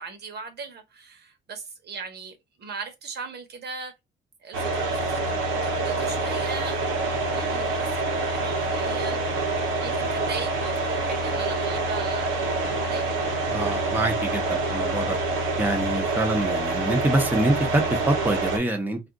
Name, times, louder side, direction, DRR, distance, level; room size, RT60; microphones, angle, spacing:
voice 1, 0.0-3.9 4.4-9.2 9.8-13.2, right 5 dB, 55° right, 1.0 m, -39 dB
sound 1, 4.5-18.6, right 3 dB, 85° right, 1.0 m, -26 dB
voice 2, 13.5-15.2 15.6-19.0, right 1 dB, 10° right, 0.8 m, -25 dB
2.4 x 2.4 x 3.7 m
cardioid pair, 90°, 20 cm